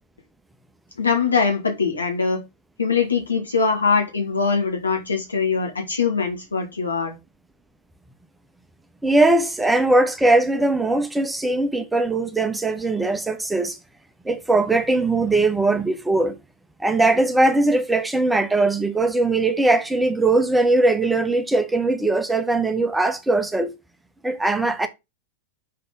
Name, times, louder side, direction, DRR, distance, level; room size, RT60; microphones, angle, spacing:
voice 1, 1.0-2.4 2.8-7.1, left 5 dB, 75° left, 1.8 m, -22 dB
voice 2, 9.0-13.8 14.2-16.4 16.8-23.7 24.2-24.9, right 2 dB, 5° right, 0.8 m, -20 dB
5.6 x 4.1 x 5.3 m
figure-of-eight pair, 90°, 0 cm